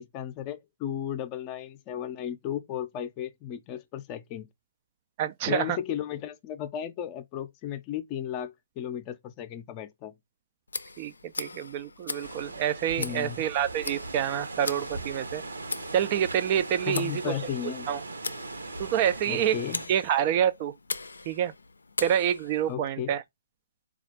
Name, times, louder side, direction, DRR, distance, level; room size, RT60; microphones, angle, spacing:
voice 1, 0.0-4.5 5.5-10.1 13.0-13.4 16.8-17.9 19.3-19.8 22.7-23.2, left 10 dB, 25° left, 0.5 m, -35 dB
voice 2, 5.2-5.8 11.0-11.1 11.4-15.4 15.9-17.3 17.9-18.0 18.8-19.6 19.9-20.7 21.3-21.5 22.0-23.2, right 9 dB, 30° right, 0.3 m, -27 dB
Tick, 10.7-22.7, left 3 dB, 75° left, 0.5 m, -40 dB
sound 1, 12.2-19.9, right 2 dB, 75° right, 0.9 m, -39 dB
4.0 x 2.4 x 4.4 m
figure-of-eight pair, 135°, 0 cm